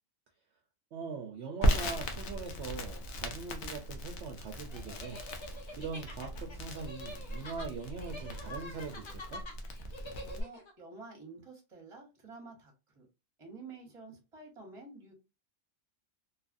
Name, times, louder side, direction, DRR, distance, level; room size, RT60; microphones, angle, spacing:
voice 1, 0.9-9.4, right 5 dB, 65° right, 0.8 m, -42 dB
Crackle, 1.6-10.4, equal, 70° left, 0.9 m, -36 dB
sound 1, 4.7-10.7, left 1 dB, 40° left, 0.4 m, -47 dB
voice 2, 10.2-13.1 13.4-15.1, right 3 dB, 25° right, 0.9 m, -50 dB
2.8 x 2.4 x 2.5 m
omnidirectional pair, 1.3 m